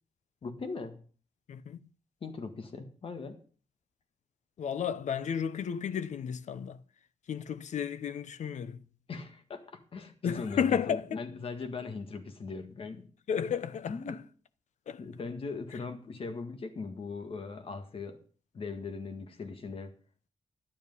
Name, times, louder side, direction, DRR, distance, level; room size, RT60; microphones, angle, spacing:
voice 1, 0.4-1.0 2.2-3.4 9.1-13.1 13.9-14.2 15.0-18.2 18.5-19.9, left 4 dB, 50° left, 1.7 m, -39 dB
voice 2, 1.5-1.9 4.6-6.8 7.3-8.8 10.2-11.2 13.3-14.2 14.9-15.0, left 7 dB, 90° left, 0.7 m, -32 dB
12.0 x 9.9 x 5.4 m
wide cardioid pair, 165°, 12 cm